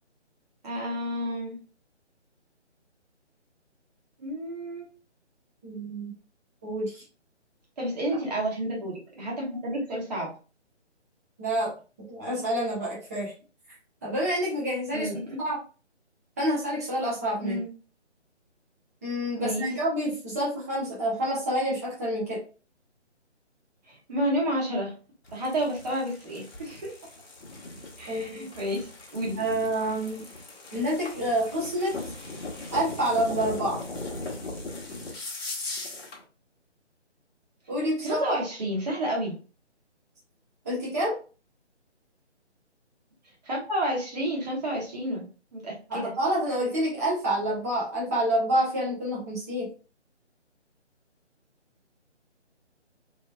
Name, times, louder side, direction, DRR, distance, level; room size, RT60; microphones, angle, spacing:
voice 1, 0.6-1.6 4.2-4.9 7.8-10.3 14.9-15.4 17.4-17.7 19.4-19.6 23.9-24.9 25.3-26.9 28.0-29.4 38.0-39.4 43.4-46.1, equal, 35° right, -3 dB, 1.2 m, -30 dB
voice 2, 5.6-6.1 6.6-7.0 8.1-8.2 11.4-11.7 12.1-13.3 14.0-15.1 15.4-15.6 16.4-17.6 19.0-22.4 28.1-28.4 29.4-30.3 30.7-32.0 32.7-33.8 37.7-38.4 40.6-41.2 45.9-49.7, right 1 dB, 15° right, -7 dB, 0.7 m, -28 dB
sound 1, 25.2-36.2, left 2 dB, 60° left, 1.1 m, -39 dB
3.0 x 2.9 x 2.2 m, 0.35 s
figure-of-eight pair, 160°, 35 cm